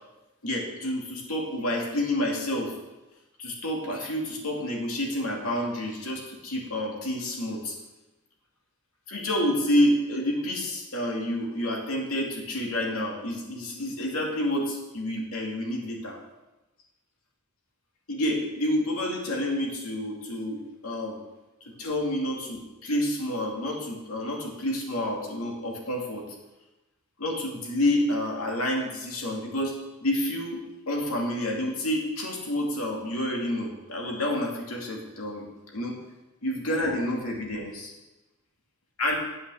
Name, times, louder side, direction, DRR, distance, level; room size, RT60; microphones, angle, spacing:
voice 1, 0.4-2.7 3.4-7.7 9.1-16.2 18.1-21.2 21.7-26.2 27.2-35.5 35.7-36.0 36.4-37.9 39.0-39.2, left 1 dB, 80° left, 0 dB, 2.4 m, -29 dB
8.7 x 7.7 x 6.9 m, 1.0 s
head